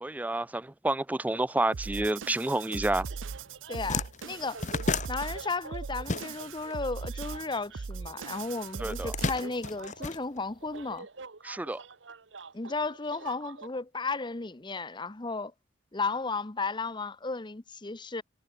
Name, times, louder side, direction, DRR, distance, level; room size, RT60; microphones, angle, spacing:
voice 1, 0.0-3.0 8.8-9.1 11.4-11.8, right 2 dB, 10° right, 0.4 m, -29 dB
sound 1, 1.7-9.7, right 5 dB, 90° right, 0.6 m, -39 dB
sound 2, 3.1-3.3 3.6-6.7 7.0-8.2 8.8-10.8, left 3 dB, 40° left, 1.5 m, -34 dB
sound 3, 3.1-13.7, right 4 dB, 75° right, 1.5 m, -48 dB
voice 2, 3.7-4.6 5.1-11.1 12.5-15.5 15.9-18.2, left 3 dB, 25° left, 0.9 m, -34 dB
head